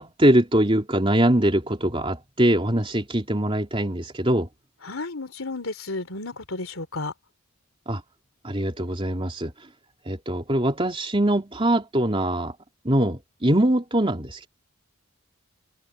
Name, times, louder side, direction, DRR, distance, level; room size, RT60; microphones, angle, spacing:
voice 1, 0.0-4.5 7.9-8.0 8.4-9.5 10.1-12.5 12.8-14.5, right 1 dB, 25° right, 3.2 m, -22 dB
voice 2, 4.8-7.1, left 3 dB, 70° left, 3.3 m, -32 dB
head